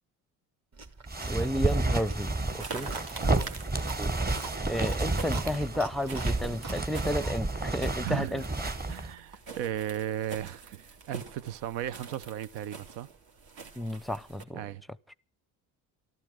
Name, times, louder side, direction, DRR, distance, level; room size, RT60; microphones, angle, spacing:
Chewing mastication, 0.7-7.9, right 4 dB, 40° right, 2.7 m, -47 dB
sound 1, 1.1-9.1, right 2 dB, 20° right, 1.6 m, -31 dB
voice 1, 1.3-2.9 4.0-4.1 4.7-8.4 13.8-14.6, equal, ahead, 0.6 m, -32 dB
sound 2, 2.6-14.4, right 4 dB, 60° right, 2.8 m, -45 dB
voice 2, 2.7-3.5 8.0-8.4 8.9-13.1 14.5-14.8, right 11 dB, 80° right, 0.9 m, -36 dB
13.5 x 12.0 x 7.9 m
supercardioid pair, 70°, 41 cm